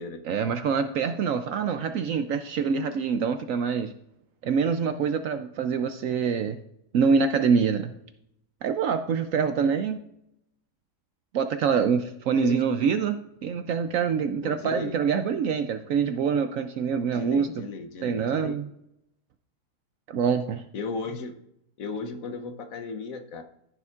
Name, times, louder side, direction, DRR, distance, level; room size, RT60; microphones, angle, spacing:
voice 1, 0.2-3.9 4.4-6.6 6.9-7.9 8.6-10.0 11.3-13.2 13.4-17.7 18.0-18.7 20.1-20.7, right 6 dB, 70° right, 8 dB, 0.8 m, -25 dB
voice 2, 12.3-12.6 14.4-15.0 17.1-18.6 20.7-21.3 21.8-23.4, left 4 dB, 60° left, 7 dB, 1.1 m, -35 dB
14.0 x 6.8 x 2.4 m, 0.78 s
omnidirectional pair, 1.7 m